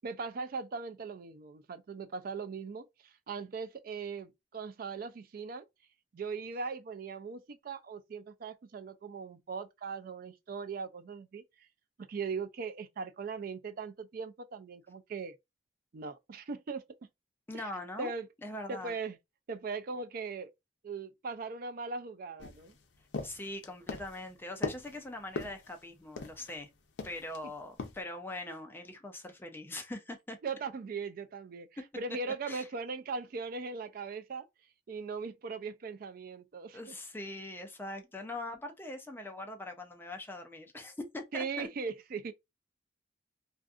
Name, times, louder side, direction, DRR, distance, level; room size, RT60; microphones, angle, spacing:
voice 1, 0.0-5.6 6.1-11.4 12.1-15.4 15.9-16.8 17.5-17.7 18.0-18.3 18.7-19.2 19.5-20.5 20.8-22.7 30.4-31.7 32.0-34.5 34.9-37.0 41.3-42.3, right 4 dB, 50° right, 0.4 m, -39 dB
voice 2, 17.5-18.1 18.4-18.9 23.2-26.7 27.0-30.4 32.5-32.7 36.7-41.7, left 2 dB, 10° left, 0.4 m, -42 dB
sound 1, 22.4-26.6 27.0-27.4 27.8-28.0, left 3 dB, 75° left, 0.5 m, -40 dB
2.5 x 2.5 x 2.3 m
head